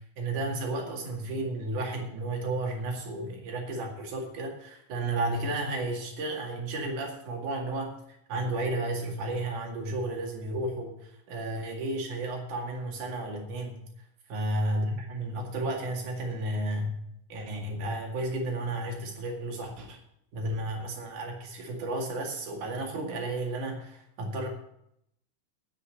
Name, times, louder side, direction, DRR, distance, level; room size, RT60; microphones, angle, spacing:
voice 1, 0.2-7.9 8.3-13.8 14.3-17.0 17.3-20.0 20.3-24.5, right 2 dB, 60° right, 1 dB, 3.6 m, -32 dB
9.7 x 7.9 x 8.6 m, 0.76 s
omnidirectional pair, 4.1 m